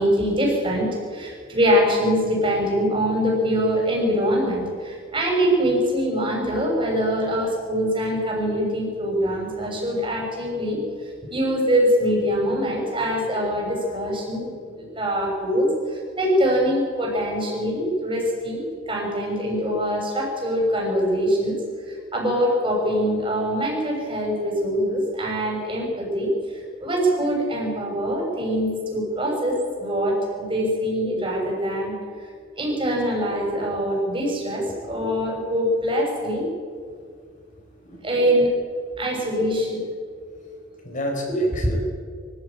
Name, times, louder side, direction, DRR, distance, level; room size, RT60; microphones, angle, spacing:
voice 1, 0.0-10.8 11.3-21.6 21.9-31.9 32.6-36.5 38.0-38.5 39.0-39.8 41.6-41.8, equal, 25° right, -1 dB, 6.4 m, -23 dB
voice 2, 34.6-35.2 37.8-38.2 40.2-40.5 40.8-41.8, left 1 dB, 40° left, 2 dB, 5.0 m, -34 dB
24.5 x 15.5 x 8.9 m, 2.1 s
head